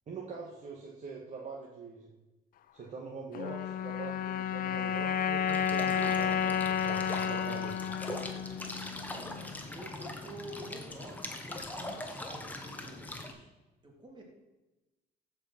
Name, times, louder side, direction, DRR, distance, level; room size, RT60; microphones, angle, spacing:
voice 1, 0.1-2.1 2.7-7.8, right 4 dB, 45° right, -2 dB, 1.9 m, -43 dB
sound 1, 3.3-9.8, left 8 dB, 55° left, 0.7 m, -32 dB
sound 2, 5.5-13.3, left 1 dB, 10° left, 1.5 m, -41 dB
voice 2, 8.9-13.5 13.8-14.2, right 1 dB, 25° right, 0 dB, 3.4 m, -49 dB
14.5 x 5.4 x 6.1 m, 1.1 s
cardioid pair, 110°, 17 cm